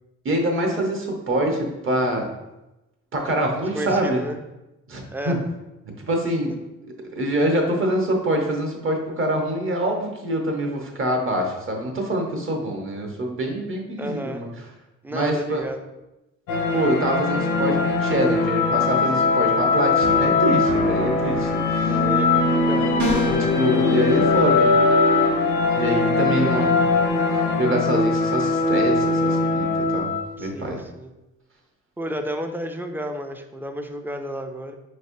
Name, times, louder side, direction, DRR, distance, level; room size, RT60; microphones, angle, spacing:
voice 1, 0.2-2.3 3.1-4.2 4.9-5.4 6.0-6.5 7.1-14.5 15.1-15.7 16.7-22.0 23.2-24.7 25.8-26.8 27.6-30.1 30.4-30.8, right 1 dB, 45° right, 1 dB, 1.0 m, -25 dB
voice 2, 3.7-4.4 5.1-5.4 14.0-14.5 15.0-15.8 21.8-23.2 26.4-26.8 30.4-31.1 32.0-34.8, right 1 dB, 5° right, 6 dB, 0.3 m, -32 dB
sound 1, 16.5-30.3, left 3 dB, 85° left, 0.6 m, -20 dB
sound 2, 23.0-23.5, equal, 75° right, 1.3 m, -25 dB
5.0 x 3.2 x 2.7 m, 0.98 s
cardioid pair, 90°, 30 cm